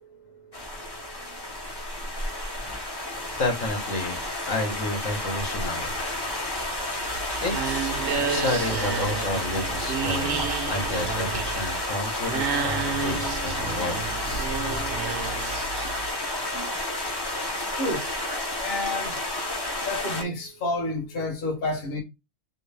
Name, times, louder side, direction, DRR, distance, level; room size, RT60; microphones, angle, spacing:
sound 1, 0.5-20.2, left 1 dB, 30° left, 0.5 m, -31 dB
voice 1, 3.4-6.0 7.4-14.1, left 2 dB, 80° left, 1.5 m, -31 dB
sound 2, 7.0-16.1, right 5 dB, 65° right, 1.0 m, -31 dB
voice 2, 14.4-14.9 16.5-16.7 17.7-18.1 18.6-19.2 19.9-22.0, left 2 dB, 50° left, 1.2 m, -30 dB
3.2 x 2.7 x 3.3 m
omnidirectional pair, 1.3 m